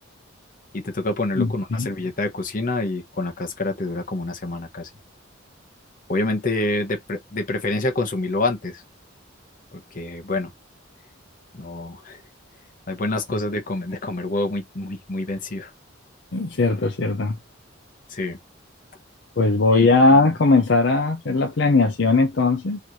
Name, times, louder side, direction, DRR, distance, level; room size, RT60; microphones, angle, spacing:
voice 1, 0.7-4.9 6.1-8.7 9.9-10.5 11.5-12.2 12.9-15.7 18.1-18.4 19.7-19.9, left 2 dB, 40° left, 1.0 m, -27 dB
voice 2, 1.4-1.9 16.3-17.4 19.4-22.8, left 3 dB, 55° left, 0.6 m, -19 dB
3.2 x 2.6 x 4.5 m
head